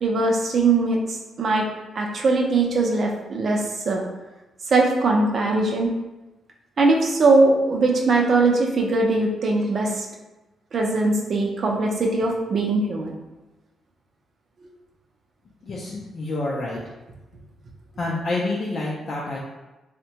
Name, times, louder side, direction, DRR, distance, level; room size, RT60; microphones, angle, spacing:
voice 1, 0.0-1.7 2.0-4.0 4.7-5.9 6.8-10.1 10.7-13.1, right 3 dB, 45° right, 0 dB, 0.5 m, -21 dB
voice 2, 15.7-16.8 18.0-19.4, left 2 dB, 50° left, -4 dB, 0.4 m, -28 dB
3.4 x 2.1 x 2.8 m, 1.1 s
cardioid pair, 135°, 0 cm